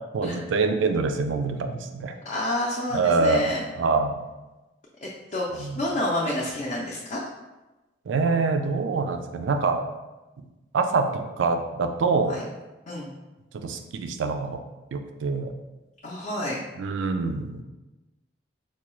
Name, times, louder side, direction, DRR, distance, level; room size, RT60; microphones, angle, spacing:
voice 1, 0.1-2.2 2.9-4.2 5.6-5.8 8.1-9.8 10.7-12.4 13.5-14.6 14.9-15.5 16.8-17.6, right 4 dB, 85° right, 7 dB, 0.4 m, -25 dB
voice 2, 2.2-3.6 5.0-7.2 12.3-12.4 12.9-13.1 16.0-16.6, left 1 dB, 45° left, -4 dB, 0.5 m, -29 dB
4.6 x 2.2 x 3.0 m, 1.1 s
head